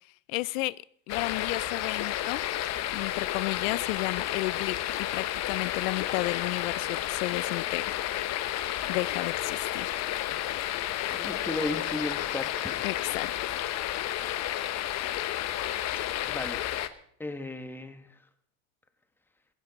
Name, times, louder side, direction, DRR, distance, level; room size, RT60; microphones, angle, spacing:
voice 1, 0.3-0.8 1.1-2.4 2.9-8.0 8.9-10.0 12.8-13.6, left 22 dB, 75° left, 21 dB, 0.5 m, -33 dB
sound 1, 1.1-16.9, left 12 dB, 40° left, 1.0 m, -31 dB
voice 2, 11.1-12.8 16.3-16.6 17.2-18.1, left 2 dB, 5° left, 8 dB, 1.2 m, -35 dB
15.5 x 15.5 x 4.0 m, 0.68 s
supercardioid pair, 130°, 41 cm